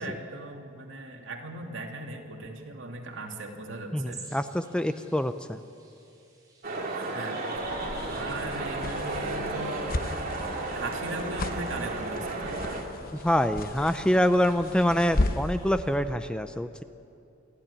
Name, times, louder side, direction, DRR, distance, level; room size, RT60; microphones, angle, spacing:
voice 1, 0.0-4.4 7.1-7.4 8.1-10.0 10.7-12.6, right 2 dB, 65° right, 1 dB, 2.8 m, -38 dB
voice 2, 3.9-5.6 13.2-16.8, equal, 5° left, 9 dB, 0.5 m, -25 dB
sound 1, 4.1-16.0, right 3 dB, 20° right, 5.6 m, -53 dB
sound 2, 6.6-12.8, right 2 dB, 45° right, 2.9 m, -33 dB
sound 3, 7.5-15.6, left 2 dB, 45° left, 0.9 m, -35 dB
28.5 x 12.0 x 9.9 m, 2.6 s
head